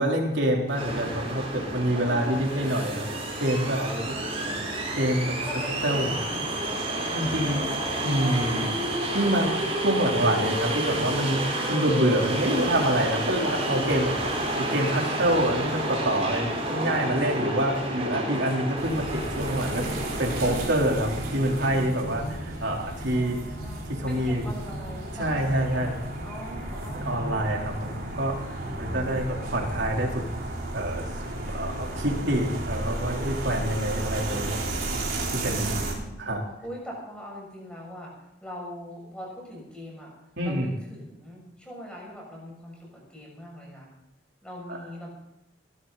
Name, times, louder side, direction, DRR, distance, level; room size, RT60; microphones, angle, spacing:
voice 1, 0.0-3.1 3.4-3.9 5.0-5.4 5.8-6.1 7.0-7.6 8.0-8.7 9.1-9.5 9.8-11.4 11.7-14.2 14.5-23.4 24.0-24.4 25.2-25.9 26.9-28.4 28.8-30.2 30.7-31.1 31.5-34.6 35.3-35.7 36.2-36.4 40.4-40.7 44.7-44.8, right 1 dB, 65° right, -1 dB, 3.7 m, -26 dB
sound 1, 0.7-20.5, right 1 dB, 30° right, 4.5 m, -30 dB
voice 2, 1.8-2.8 3.9-4.9 5.4-6.4 20.4-20.6 23.1-26.0 26.2-27.7 28.6-29.5 35.4-36.2 36.6-38.1 38.4-40.1 40.4-43.9 44.4-45.1, equal, 5° left, -2 dB, 6.8 m, -42 dB
sound 2, 18.8-35.9, right 1 dB, 45° right, 4.1 m, -33 dB
sound 3, 19.5-30.5, equal, 70° left, 5.8 m, -41 dB
22.0 x 13.0 x 4.1 m, 0.92 s
head